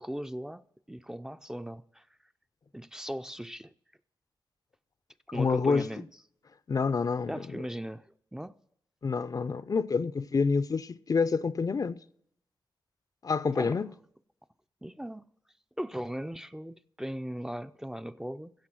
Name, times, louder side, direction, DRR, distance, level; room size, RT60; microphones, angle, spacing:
voice 1, 0.0-2.1 2.7-3.7 5.3-6.1 7.3-8.5 13.5-13.9 14.8-15.3 15.8-18.5, equal, 5° right, 0.5 m, -38 dB
voice 2, 5.3-5.9 6.7-7.4 9.0-12.0 13.2-13.9, left 4 dB, 45° left, 0.5 m, -27 dB
16.0 x 7.2 x 6.0 m
cardioid pair, 60°, 9 cm